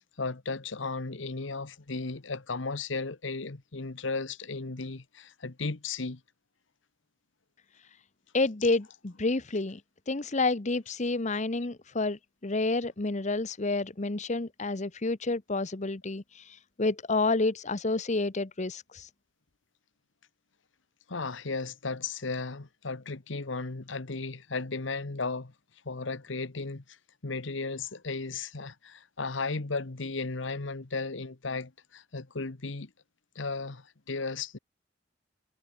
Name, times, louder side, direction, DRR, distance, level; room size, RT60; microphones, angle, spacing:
voice 1, 0.0-6.2 21.1-25.5 25.8-27.0 27.2-32.9 33.3-34.6, left 3 dB, 75° left, 1.2 m, -35 dB
voice 2, 8.3-9.8 10.1-19.1, left 3 dB, 40° left, 1.0 m, -29 dB
head